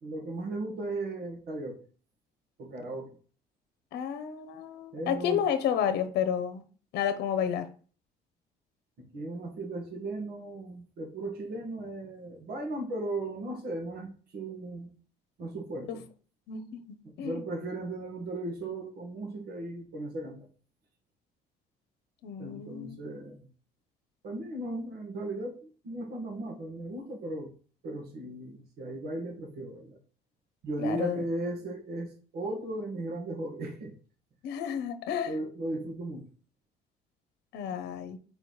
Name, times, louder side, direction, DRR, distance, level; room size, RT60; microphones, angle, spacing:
voice 1, 0.0-1.8 2.6-3.2 4.9-5.4 9.0-14.9 15.4-16.0 17.0-20.5 22.4-23.5 24.2-27.5 27.8-30.0 30.6-33.9 35.3-36.3, right 2 dB, 70° right, 2 dB, 2.0 m, -36 dB
voice 2, 3.9-6.6 6.9-7.7 15.9-16.0 16.5-16.8 17.2-17.4 22.2-23.0 30.8-31.2 34.4-35.3 37.5-38.2, left 8 dB, 75° left, 10 dB, 0.9 m, -31 dB
4.8 x 4.4 x 4.8 m, 0.41 s
cardioid pair, 110°, 17 cm